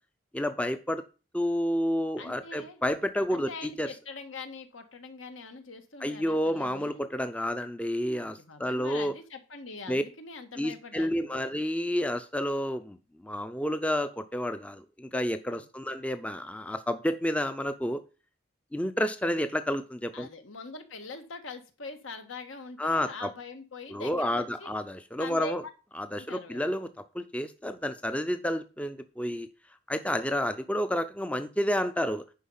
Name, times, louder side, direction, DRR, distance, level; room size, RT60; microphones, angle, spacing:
voice 1, 0.3-1.1 1.3-3.9 6.0-9.1 9.9-10.0 10.6-18.0 18.7-20.3 22.8-23.3 23.9-25.6 26.0-26.9 27.1-29.5 29.9-32.2, equal, 5° left, 10 dB, 0.5 m, -30 dB
voice 2, 2.2-2.8 3.3-7.1 8.2-11.5 15.5-15.9 20.1-24.7 25.2-25.7 26.2-26.7, left 3 dB, 80° left, 7 dB, 1.5 m, -43 dB
10.0 x 5.1 x 5.6 m, 0.34 s
head